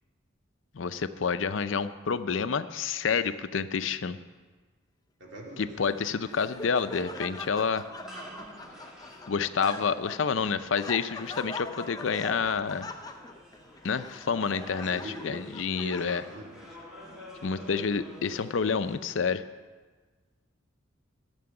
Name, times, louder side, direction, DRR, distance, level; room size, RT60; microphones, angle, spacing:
voice 1, 0.7-4.2 5.6-7.8 9.3-12.9 13.8-16.2 17.4-19.4, left 5 dB, 65° left, 12 dB, 0.5 m, -29 dB
voice 2, 5.2-5.7 14.8-15.4 15.8-16.8 17.1-17.2 17.6-17.8, right 1 dB, 60° right, -1 dB, 2.8 m, -43 dB
sound 1, 5.6-19.0, equal, 5° right, 2.6 m, -50 dB
Laughter, 5.9-16.5, left 2 dB, 20° left, 0.6 m, -43 dB
13.0 x 6.9 x 8.8 m, 1.4 s
head